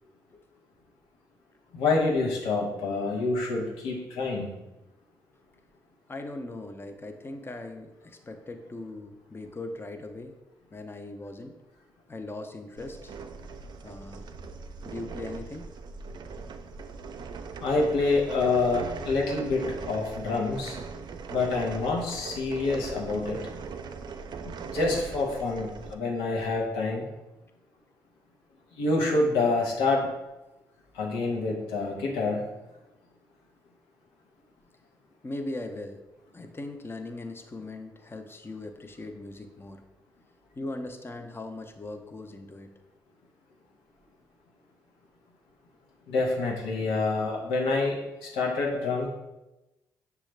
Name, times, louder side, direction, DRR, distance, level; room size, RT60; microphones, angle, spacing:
voice 1, 1.7-4.5 17.6-20.8 21.3-23.4 24.7-27.0 28.8-30.1 30.9-32.5 46.1-49.1, left 3 dB, 85° left, -1 dB, 0.8 m, -27 dB
voice 2, 6.1-10.3 10.7-11.6 12.1-13.1 13.8-14.3 14.8-15.7 35.2-36.0 36.3-39.8 40.6-42.7, left 2 dB, 25° left, 6 dB, 0.6 m, -39 dB
sound 1, 12.8-26.0, right 5 dB, 55° right, 0.4 m, -40 dB
6.2 x 2.3 x 3.2 m, 1.0 s
hypercardioid pair, 45°, 9 cm